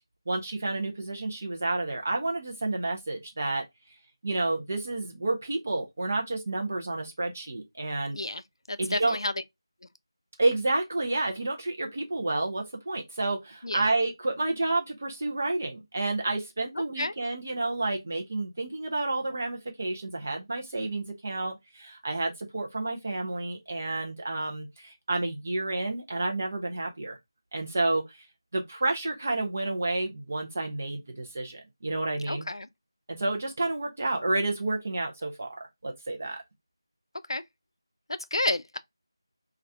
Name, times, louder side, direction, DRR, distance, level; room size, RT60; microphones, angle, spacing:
voice 1, 0.3-3.6 4.2-8.2 8.8-9.2 10.4-27.2 27.5-28.2 28.5-32.5 33.1-36.4, right 2 dB, 25° right, 0.5 m, -30 dB
voice 2, 8.7-9.4 13.6-13.8 16.7-17.1 32.3-32.7 37.3-37.4 38.1-38.8, left 2 dB, 85° left, 0.4 m, -30 dB
2.6 x 2.3 x 3.4 m
figure-of-eight pair, 180°, 2 cm